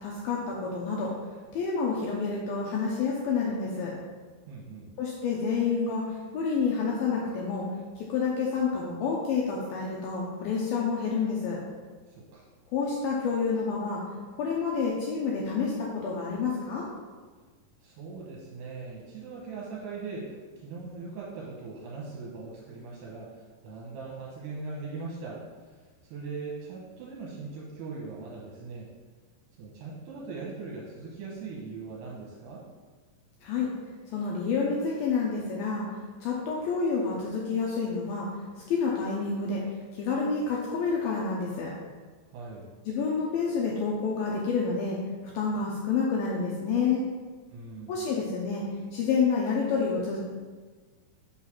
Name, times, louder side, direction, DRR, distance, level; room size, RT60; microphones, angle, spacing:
voice 1, 0.0-1.1 1.5-3.9 5.0-7.7 8.0-11.6 12.7-14.0 14.4-16.9 33.4-33.7 34.1-35.9 36.2-38.3 38.7-39.6 39.9-41.7 42.9-45.0 45.3-47.1 47.9-48.6 48.9-50.2, left 5 dB, 80° left, -3 dB, 2.1 m, -28 dB
voice 2, 4.5-4.9 12.1-12.5 17.8-28.9 29.6-32.6 42.3-42.7 47.5-48.0, right 4 dB, 80° right, -4 dB, 2.8 m, -40 dB
6.2 x 4.0 x 5.8 m, 1.4 s
omnidirectional pair, 5.1 m